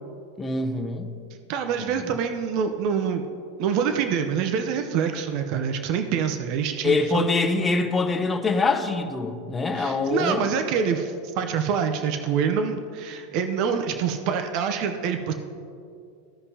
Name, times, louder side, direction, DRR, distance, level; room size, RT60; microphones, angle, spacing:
voice 1, 0.4-1.1 1.8-2.1 6.8-10.5, left 3 dB, 15° left, 3 dB, 0.9 m, -24 dB
voice 2, 1.5-3.2 3.6-7.2 9.8-15.3, right 7 dB, 50° right, 7 dB, 0.7 m, -26 dB
15.5 x 5.2 x 2.8 m, 2.4 s
supercardioid pair, 120°, 0 cm